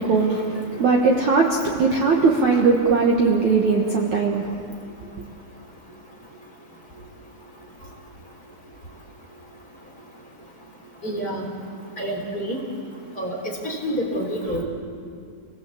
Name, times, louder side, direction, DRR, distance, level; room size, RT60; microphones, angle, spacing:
voice 1, 0.0-4.4, right 4 dB, 85° right, 0 dB, 1.6 m, -19 dB
voice 2, 11.0-11.5 12.0-12.6 13.2-13.3 13.6-14.6, equal, 20° left, -2 dB, 3.1 m, -27 dB
28.0 x 18.5 x 8.5 m, 2.3 s
omnidirectional pair, 5.9 m